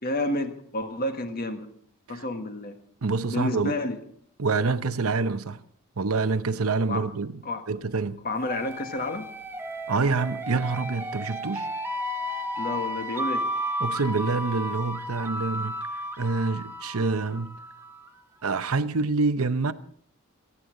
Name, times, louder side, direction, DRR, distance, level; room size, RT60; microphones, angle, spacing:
voice 1, 0.0-1.7 2.1-2.7 3.3-4.0 6.9-7.0 7.4-7.6 8.2-9.3 12.6-13.5, left 1 dB, 45° left, 1.5 m, -30 dB
voice 2, 3.0-3.8 4.4-5.6 6.0-7.4 7.7-8.2 9.9-11.7 13.8-15.8 16.2-17.6 18.4-19.7, right 4 dB, 75° right, 0.8 m, -26 dB
sound 1, 8.4-18.1, equal, 10° right, 0.9 m, -33 dB
27.5 x 9.8 x 3.9 m
head